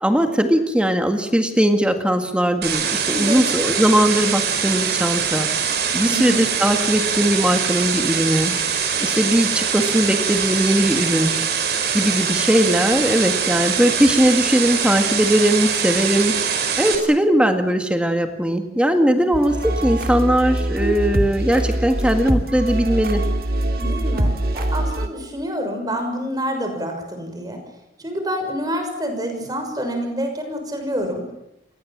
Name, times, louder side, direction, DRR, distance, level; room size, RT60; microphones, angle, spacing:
voice 1, 0.0-8.6 9.0-11.3 11.9-16.4 16.8-23.2, equal, 5° right, 6 dB, 1.9 m, -19 dB
sound 1, 2.6-17.0, right 7 dB, 70° right, 5.3 m, -23 dB
voice 2, 3.1-3.6 6.1-6.4 19.1-19.3 23.8-27.6 28.0-31.2, equal, 20° right, 5 dB, 6.1 m, -27 dB
sound 2, 19.3-25.1, right 1 dB, 55° right, 2.5 m, -23 dB
30.0 x 21.5 x 7.4 m, 0.87 s
head